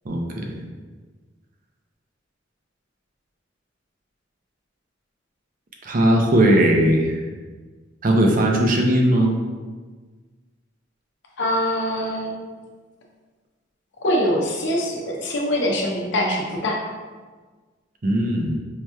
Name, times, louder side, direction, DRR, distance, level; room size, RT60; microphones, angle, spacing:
voice 1, 0.1-0.6 5.8-7.2 8.0-9.3 18.0-18.6, right 1 dB, 45° right, 1 dB, 0.5 m, -18 dB
voice 2, 11.4-12.4 14.0-16.8, equal, 65° left, -1 dB, 0.6 m, -23 dB
4.7 x 2.9 x 2.2 m, 1.4 s
head